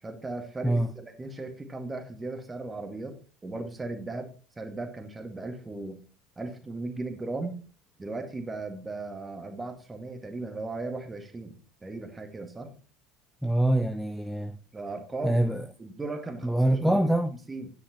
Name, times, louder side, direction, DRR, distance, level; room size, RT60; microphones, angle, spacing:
voice 1, 0.0-4.3 4.6-6.0 6.4-7.6 8.0-12.7 14.7-17.1 17.5-17.7, right 2 dB, 15° right, 2.1 m, -37 dB
voice 2, 13.4-14.5 15.2-15.6 16.4-17.3, right 1 dB, ahead, 0.6 m, -24 dB
11.0 x 9.4 x 3.1 m
figure-of-eight pair, 65°, 0 cm